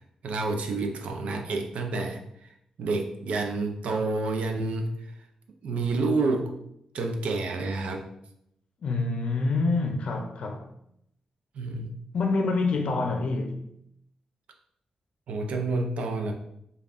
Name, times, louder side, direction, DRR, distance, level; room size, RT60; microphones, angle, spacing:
voice 1, 0.2-2.5 2.8-4.9 5.6-6.5 6.9-8.1 11.5-12.0 15.3-16.3, right 3 dB, 85° right, 0.5 m, -29 dB
voice 2, 8.8-10.7 12.1-13.7, left 3 dB, 70° left, 0.6 m, -27 dB
5.2 x 2.3 x 2.4 m
cardioid pair, 95°, 2 cm